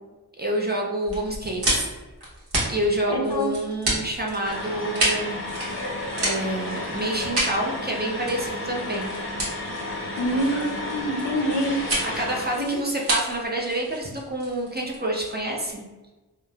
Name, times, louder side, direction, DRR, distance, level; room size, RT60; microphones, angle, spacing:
voice 1, 0.4-1.9 2.7-5.4 6.2-9.1 12.1-15.8, right 1 dB, 25° right, -1 dB, 0.5 m, -28 dB
sound 1, 1.1-15.7, right 1 dB, 65° right, 1.0 m, -30 dB
voice 2, 3.1-3.5 10.2-11.8 12.6-12.8, equal, 70° left, 1 dB, 0.6 m, -26 dB
sound 2, 4.4-12.7, left 1 dB, 30° left, 0.7 m, -32 dB
3.0 x 2.0 x 2.3 m, 1.2 s
wide cardioid pair, 50°, 41 cm